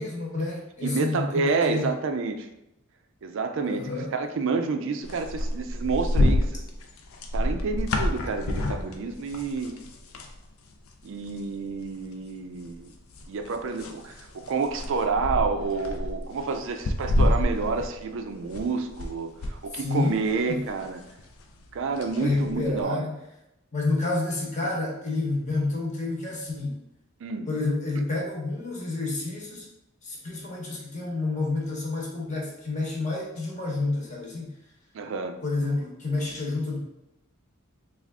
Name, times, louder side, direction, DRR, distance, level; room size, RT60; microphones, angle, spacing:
voice 1, 0.0-1.9 3.7-4.1 19.7-20.6 22.2-23.2 23.7-26.8 27.5-29.7 30.0-34.5 35.4-36.8, left 2 dB, 35° left, -2 dB, 0.9 m, -29 dB
voice 2, 0.8-2.5 3.2-6.7 7.3-9.8 11.0-12.9 13.3-21.0 21.7-23.1 24.6-24.7 27.2-27.5 28.0-28.1 34.9-35.4, right 4 dB, 60° right, 7 dB, 0.4 m, -29 dB
sound 1, 5.0-10.4 10.7-10.9 11.2-12.0 12.6-19.1 19.4-22.8, left 1 dB, 75° left, 0.5 m, -28 dB
3.5 x 2.4 x 3.5 m, 0.87 s
head